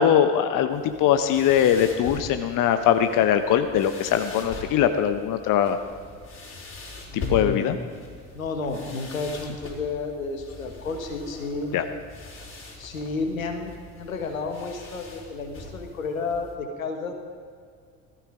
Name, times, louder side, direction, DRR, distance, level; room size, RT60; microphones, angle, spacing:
voice 1, 0.0-5.8 7.3-7.8 11.7-11.8, left 9 dB, 50° left, 8 dB, 1.0 m, -21 dB
sound 1, 0.7-16.5, left 2 dB, 30° left, 4.0 m, -42 dB
voice 2, 7.1-7.7 8.3-11.7 12.7-17.1, left 4 dB, 85° left, 5 dB, 1.7 m, -31 dB
17.0 x 14.5 x 5.1 m, 2.1 s
hypercardioid pair, 60°, 40 cm